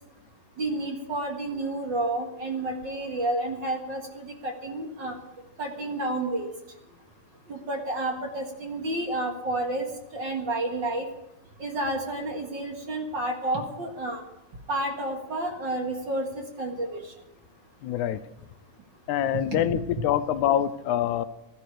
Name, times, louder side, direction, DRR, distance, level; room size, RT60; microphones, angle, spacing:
voice 1, 0.6-5.2 5.6-6.5 7.5-9.9 10.1-11.1 11.6-14.2 14.7-17.0 19.5-19.6, right 1 dB, 45° right, 2 dB, 2.0 m, -30 dB
voice 2, 17.8-18.2 19.1-21.2, left 10 dB, 90° left, 13 dB, 2.1 m, -25 dB
15.5 x 13.0 x 4.9 m, 0.96 s
omnidirectional pair, 3.4 m